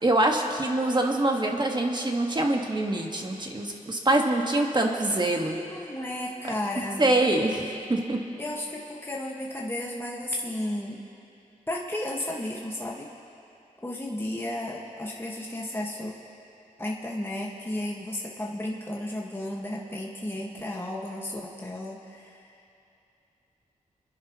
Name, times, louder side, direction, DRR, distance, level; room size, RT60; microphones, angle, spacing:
voice 1, 0.0-5.6 7.0-8.2, right 1 dB, 30° right, 1 dB, 1.6 m, -25 dB
voice 2, 5.7-7.1 8.4-11.0 11.7-13.1 13.8-16.2 16.8-22.5, left 1 dB, 15° left, -2 dB, 1.5 m, -33 dB
30.0 x 10.5 x 3.0 m, 2.7 s
cardioid pair, 55°, 14 cm